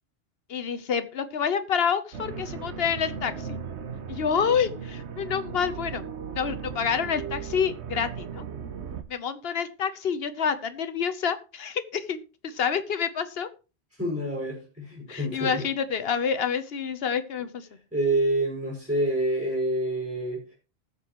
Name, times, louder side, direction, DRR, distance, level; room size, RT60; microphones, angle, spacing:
voice 1, 0.5-3.6 4.1-6.0 6.3-8.4 9.1-13.5 15.1-17.7, left 7 dB, 65° left, 11 dB, 1.1 m, -28 dB
sound 1, 2.1-9.0, right 6 dB, 85° right, 1.3 m, -37 dB
voice 2, 13.9-15.7 17.9-20.5, right 1 dB, 5° right, -5 dB, 5.5 m, -27 dB
19.0 x 7.0 x 3.0 m, 0.33 s
omnidirectional pair, 1.1 m